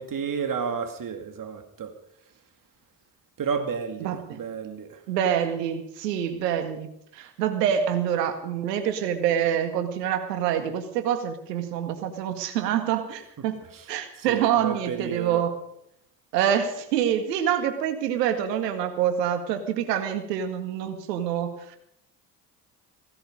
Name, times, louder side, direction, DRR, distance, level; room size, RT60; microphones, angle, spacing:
voice 1, 0.0-1.9 3.4-5.0 13.7-13.8 14.2-15.4, right 6 dB, 40° right, 6 dB, 2.2 m, -31 dB
voice 2, 4.0-4.4 5.1-13.6 13.9-15.6 16.3-21.8, right 9 dB, 85° right, 8 dB, 2.0 m, -26 dB
17.0 x 16.0 x 5.2 m, 0.73 s
hypercardioid pair, 55°, 48 cm